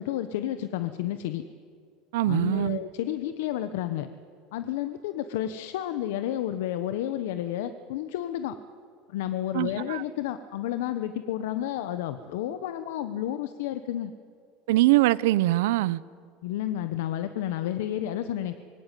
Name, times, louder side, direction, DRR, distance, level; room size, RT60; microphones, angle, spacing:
voice 1, 0.0-1.4 2.3-4.1 4.5-8.5 9.1-14.1 16.4-18.6, left 12 dB, 90° left, 10 dB, 1.2 m, -31 dB
voice 2, 2.1-2.8 9.5-10.0 14.7-16.0, right 17 dB, 90° right, 19 dB, 0.8 m, -23 dB
25.5 x 23.0 x 9.3 m, 2.2 s
cardioid pair, 180°, 0 cm